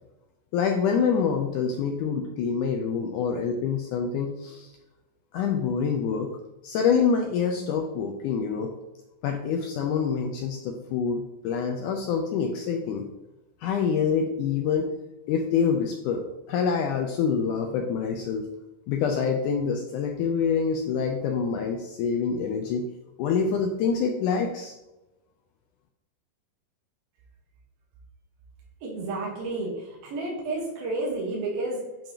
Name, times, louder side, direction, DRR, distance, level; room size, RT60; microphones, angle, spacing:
voice 1, 0.5-4.7 5.3-6.3 6.6-8.7 9.2-13.1 13.6-14.9 15.3-16.2 16.5-18.5 18.9-22.9 23.2-24.7, left 6 dB, 85° left, 3 dB, 1.8 m, -26 dB
voice 2, 28.8-31.8, right 2 dB, 75° right, -3 dB, 3.1 m, -31 dB
8.9 x 5.4 x 2.8 m, 0.99 s
omnidirectional pair, 4.2 m